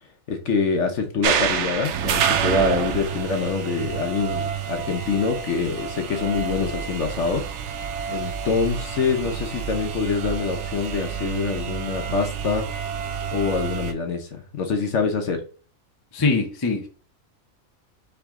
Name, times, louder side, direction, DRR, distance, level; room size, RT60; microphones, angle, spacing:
voice 1, 0.3-7.5 8.1-12.7 13.3-15.4, left 5 dB, 60° left, 1.0 m, -25 dB
sound 1, 1.2-13.9, right 8 dB, 65° right, 0.8 m, -28 dB
voice 2, 16.1-16.9, left 3 dB, 20° left, 0.7 m, -22 dB
4.7 x 3.0 x 3.5 m
omnidirectional pair, 1.4 m